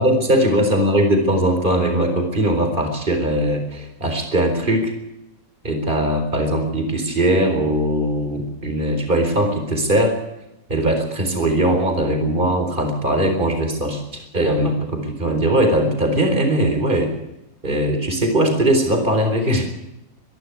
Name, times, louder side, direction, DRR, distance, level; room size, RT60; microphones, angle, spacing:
voice 1, 0.0-4.9 5.6-10.2 10.7-17.1 17.6-19.6, right 1 dB, 35° right, 5 dB, 4.2 m, -20 dB
25.0 x 11.5 x 9.7 m, 0.91 s
omnidirectional pair, 1.5 m